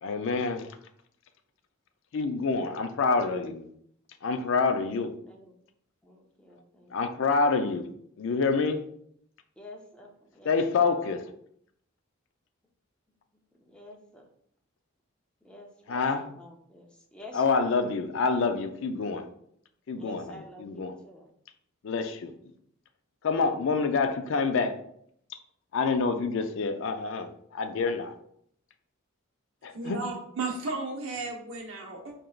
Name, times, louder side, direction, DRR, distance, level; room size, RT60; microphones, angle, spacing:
voice 1, 0.0-0.7 2.1-3.7 4.2-5.1 6.9-7.9 8.2-8.8 10.4-11.2 15.9-16.2 17.3-19.3 19.9-20.2 20.6-20.9 21.8-22.3 23.2-24.8 25.7-28.1 29.6-30.0, left 4 dB, 65° left, 0.4 m, -27 dB
voice 2, 5.2-5.6 6.0-7.3 9.6-10.6 13.6-14.3 15.4-17.7 20.0-21.3, left 1 dB, 5° left, 0.6 m, -50 dB
voice 3, 29.7-32.1, right 3 dB, 80° right, 0.9 m, -34 dB
4.7 x 2.9 x 2.3 m
head